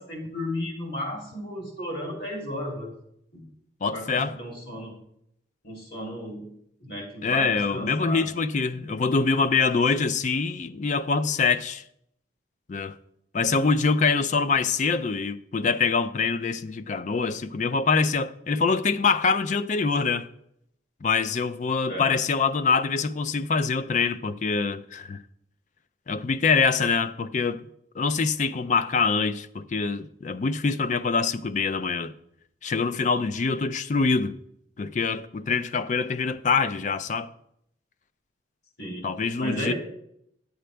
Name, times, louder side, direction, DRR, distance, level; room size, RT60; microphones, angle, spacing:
voice 1, 0.0-2.9 3.3-3.4 3.9-4.9 5.6-6.5 6.8-8.3 8.7-8.8 21.9-22.1 38.8-39.1 39.4-39.7, left 1 dB, 60° left, 3.1 m, -34 dB
voice 2, 3.8-4.4 7.2-11.8 12.7-12.9 13.3-20.3 21.0-25.2 26.1-27.6 28.0-32.1 32.6-34.4 34.8-37.3 39.0-39.7, left 4 dB, 40° left, 0.4 m, -24 dB
10.0 x 8.0 x 3.3 m
head